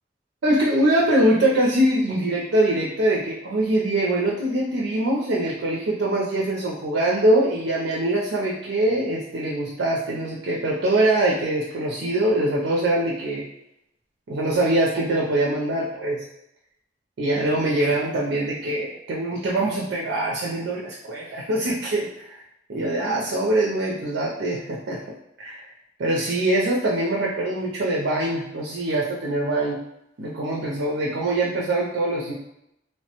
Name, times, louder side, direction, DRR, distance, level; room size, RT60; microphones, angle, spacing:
voice 1, 0.4-13.4 14.3-16.1 17.2-22.4 22.7-25.0 25.4-25.6 26.0-29.8 30.2-32.3, right 1 dB, 90° right, -3 dB, 0.5 m, -23 dB
3.1 x 2.1 x 2.8 m, 0.82 s
head